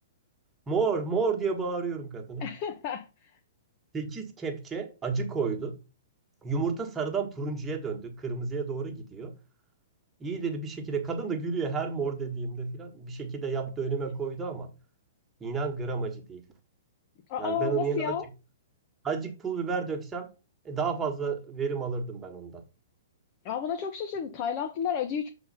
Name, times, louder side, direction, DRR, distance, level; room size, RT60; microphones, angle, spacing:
voice 1, 0.7-2.5 3.9-5.8 6.4-9.3 10.2-14.7 15.4-16.4 17.4-18.2 19.0-20.3 20.6-22.6, right 5 dB, 15° right, 1.6 m, -31 dB
voice 2, 2.4-3.1 17.3-18.3 23.4-25.3, left 7 dB, 40° left, 0.9 m, -31 dB
6.9 x 4.1 x 5.7 m
figure-of-eight pair, 115°, 0 cm